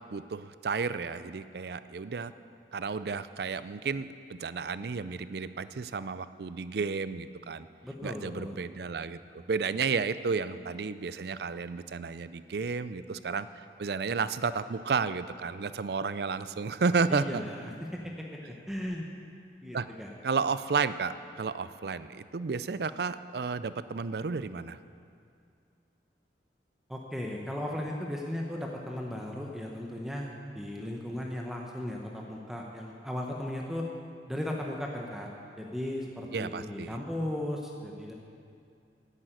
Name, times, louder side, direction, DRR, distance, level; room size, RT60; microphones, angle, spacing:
voice 1, 0.1-2.3 2.7-7.7 8.0-17.4 19.7-19.9 20.2-24.8 36.3-37.0, right 5 dB, 60° right, 14 dB, 0.4 m, -32 dB
voice 2, 7.8-8.6 17.1-19.1 19.6-20.1 26.9-33.9 34.3-35.3 35.6-38.1, left 1 dB, ahead, -1 dB, 0.9 m, -36 dB
10.5 x 9.0 x 9.2 m, 2.4 s
head